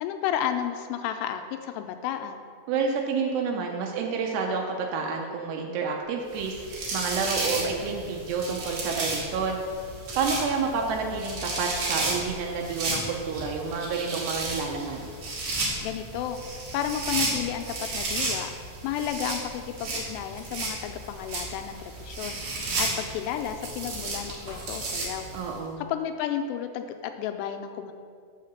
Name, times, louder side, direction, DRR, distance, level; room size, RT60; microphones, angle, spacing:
voice 1, 0.0-2.4 15.8-16.4 16.7-18.5 18.8-22.4 22.8-25.3 25.8-27.9, left 9 dB, 85° left, 7 dB, 2.7 m, -32 dB
voice 2, 2.7-6.7 6.9-9.6 10.2-15.1 25.3-25.8, right 5 dB, 80° right, 1 dB, 2.9 m, -29 dB
sound 1, 6.3-25.5, right 2 dB, 55° right, 2.2 m, -33 dB
6.5 x 5.7 x 7.0 m, 2.1 s
omnidirectional pair, 4.8 m